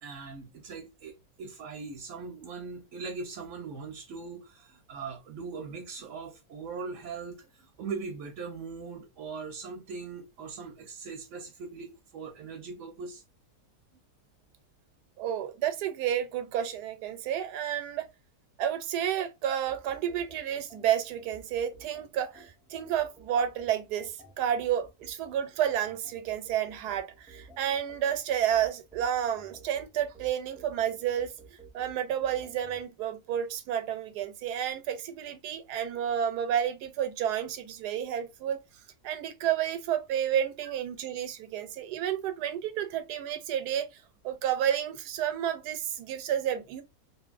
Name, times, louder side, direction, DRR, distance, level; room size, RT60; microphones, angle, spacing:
voice 1, 0.0-13.2, right 4 dB, 60° right, 0.9 m, -40 dB
voice 2, 15.2-18.1 18.6-31.3 31.7-38.6 39.0-43.9 44.2-46.8, right 10 dB, 80° right, 1.2 m, -30 dB
sound 1, 19.7-32.8, right 3 dB, 10° right, 0.3 m, -53 dB
2.7 x 2.6 x 2.4 m
omnidirectional pair, 1.7 m